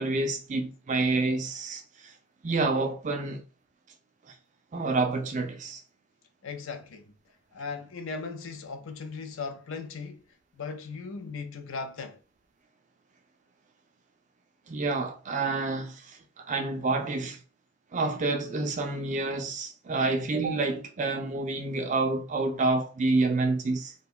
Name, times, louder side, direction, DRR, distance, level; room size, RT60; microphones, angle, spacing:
voice 1, 0.0-2.1 2.4-3.5 4.2-4.4 4.7-5.8 14.7-17.4 17.9-23.9, right 3 dB, 35° right, 0.3 m, -28 dB
voice 2, 6.4-7.2 7.5-10.2 10.5-12.2, left 4 dB, 60° left, 0.5 m, -38 dB
2.5 x 2.2 x 3.6 m
head